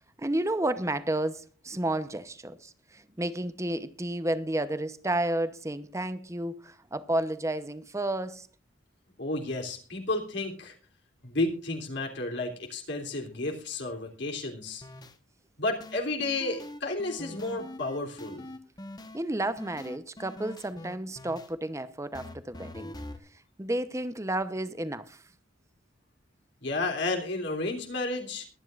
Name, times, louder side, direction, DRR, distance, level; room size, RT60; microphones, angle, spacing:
voice 1, 0.2-8.5 19.1-22.9 23.6-25.2, right 1 dB, 15° right, 0.8 m, -31 dB
voice 2, 9.2-10.7 11.2-14.8 15.6-18.5 26.6-28.5, left 2 dB, 60° left, 3.2 m, -32 dB
sound 1, 14.8-15.1 15.8-19.2 19.6-21.5 22.1-23.2, left 1 dB, 20° left, 1.1 m, -43 dB
22.5 x 11.0 x 2.5 m
head